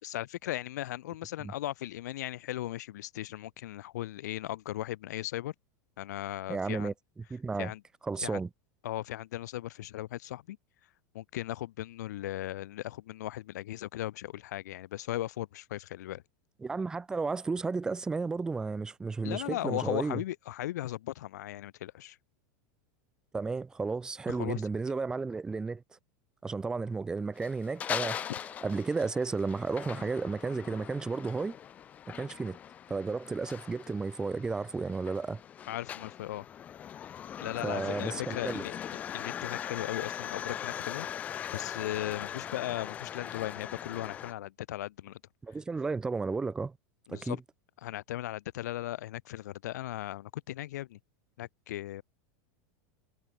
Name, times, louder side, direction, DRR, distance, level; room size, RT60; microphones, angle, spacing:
voice 1, 0.0-5.5 6.0-6.9 7.6-7.8 8.2-8.4 8.8-10.6 11.1-16.2 19.2-22.2 24.3-24.6 35.7-36.5 37.4-38.8 39.1-41.1 41.5-45.2 47.1-47.4 47.8-51.0 51.4-52.0, left 14 dB, 80° left, 3.9 m, -37 dB
voice 2, 6.5-6.9 7.3-7.7 8.1-8.5 16.6-20.2 23.3-25.8 26.4-28.3 28.6-31.5 32.1-32.6 32.9-35.4 37.6-38.6 45.4-46.8 47.1-47.4, right 4 dB, 10° right, 0.8 m, -33 dB
sound 1, 27.4-44.3, left 9 dB, 15° left, 0.4 m, -40 dB
supercardioid pair, 175°, 9 cm